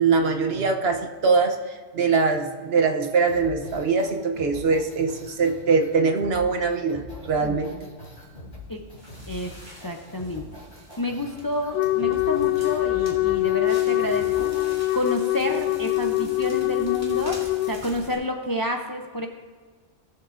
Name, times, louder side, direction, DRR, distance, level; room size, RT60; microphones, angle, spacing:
voice 1, 0.0-7.9, right 4 dB, 65° right, 4 dB, 1.0 m, -23 dB
sound 1, 3.3-14.7, left 1 dB, 45° left, 3.8 m, -42 dB
Crackle, 8.0-18.1, left 1 dB, 15° right, 2.3 m, -44 dB
voice 2, 9.8-10.4 11.0-14.6 14.9-19.3, left 1 dB, 25° left, 3 dB, 0.5 m, -29 dB
Wind instrument woodwind instrument, 11.7-17.8, left 18 dB, 80° left, 0.9 m, -24 dB
19.0 x 7.4 x 2.5 m, 1.5 s
omnidirectional pair, 1.2 m